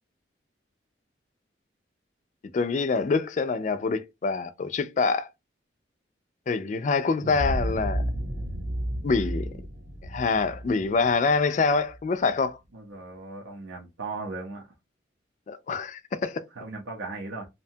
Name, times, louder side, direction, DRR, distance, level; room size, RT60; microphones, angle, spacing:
voice 1, 2.5-5.3 6.5-8.0 9.0-9.5 10.0-12.6 15.5-16.4, left 4 dB, 40° left, 0.3 m, -25 dB
sound 1, 7.2-12.0, right 1 dB, 45° right, 0.4 m, -32 dB
voice 2, 12.7-14.7 16.5-17.5, right 3 dB, 80° right, 0.6 m, -37 dB
2.7 x 2.2 x 2.6 m
head